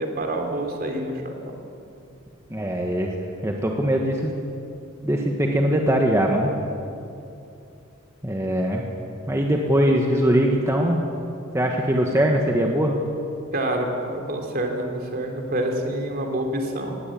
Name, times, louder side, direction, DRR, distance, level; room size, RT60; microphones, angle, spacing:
voice 1, 0.0-1.4 13.5-17.0, right 1 dB, 50° right, 2 dB, 3.2 m, -27 dB
voice 2, 2.5-3.2 3.4-4.4 5.0-6.5 8.2-8.9 9.3-11.0 11.5-12.9, equal, 15° right, 0 dB, 1.5 m, -21 dB
19.5 x 17.0 x 8.6 m, 2.7 s
head